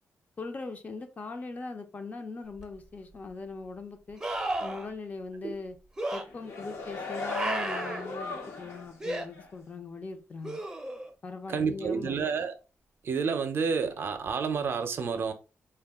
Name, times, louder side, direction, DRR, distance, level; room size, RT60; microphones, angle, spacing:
voice 1, 0.4-4.2 4.6-5.8 6.1-10.6 11.2-12.2, left 4 dB, 35° left, 0.5 m, -40 dB
sound 1, 2.6-2.7 4.2-4.9 6.0-6.2 7.3-8.0 9.0-9.3 10.4-11.1 14.3-14.4, right 2 dB, 15° right, 0.5 m, -33 dB
sound 2, 6.2-8.9 9.3-9.5, left 3 dB, 70° left, 0.9 m, -37 dB
voice 2, 11.5-12.5 13.0-15.3, right 5 dB, 55° right, 0.5 m, -29 dB
3.6 x 2.2 x 3.5 m
wide cardioid pair, 135°, 5 cm